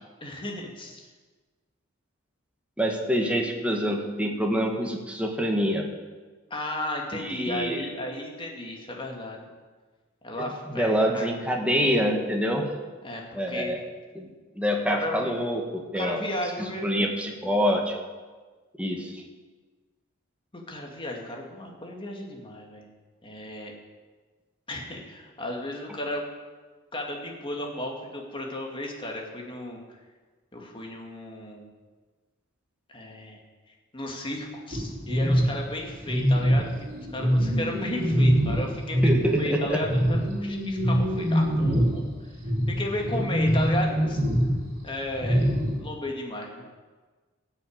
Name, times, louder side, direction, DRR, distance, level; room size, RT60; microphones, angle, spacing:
voice 1, 0.2-1.1 6.5-9.5 10.2-11.3 13.0-13.8 14.9-15.3 15.9-17.1 20.5-22.9 23.2-23.7 24.7-26.3 26.9-30.0 30.5-31.7 32.9-33.4 33.9-36.7 37.1-42.1 42.7-44.2 44.8-45.5 45.8-46.6, left 1 dB, 25° left, 1 dB, 2.2 m, -34 dB
voice 2, 2.8-5.9 7.1-7.8 10.7-12.7 13.3-13.8 14.1-14.3 14.5-16.2 16.8-17.9 18.8-19.2 39.0-39.8, equal, 5° right, 1 dB, 1.7 m, -26 dB
sound 1, 34.7-39.3 39.7-45.8, equal, 50° right, 3.8 m, -24 dB
16.0 x 6.6 x 8.7 m, 1.4 s
head